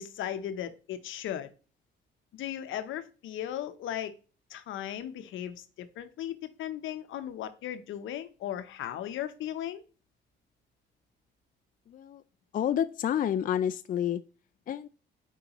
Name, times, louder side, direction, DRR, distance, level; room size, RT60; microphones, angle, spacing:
voice 1, 0.0-1.5 2.3-4.1 4.5-9.8, left 11 dB, 80° left, 0.8 m, -37 dB
voice 2, 12.5-14.2 14.7-14.9, left 10 dB, 45° left, 0.4 m, -29 dB
8.8 x 4.6 x 3.0 m
cardioid pair, 90°, 20 cm